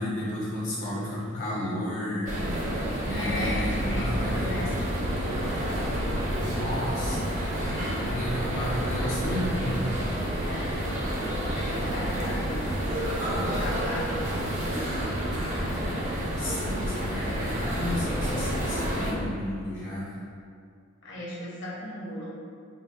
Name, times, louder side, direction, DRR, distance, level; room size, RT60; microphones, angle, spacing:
voice 1, 0.0-4.7 6.4-9.9 16.0-20.2, left 1 dB, 40° left, -9 dB, 0.6 m, -33 dB
sound 1, 2.3-19.1, equal, 35° right, 0.7 m, -29 dB
voice 2, 3.0-4.8 10.4-10.7 11.5-14.4 21.0-22.4, equal, 65° left, -6 dB, 1.0 m, -36 dB
3.8 x 2.1 x 3.7 m, 2.2 s
head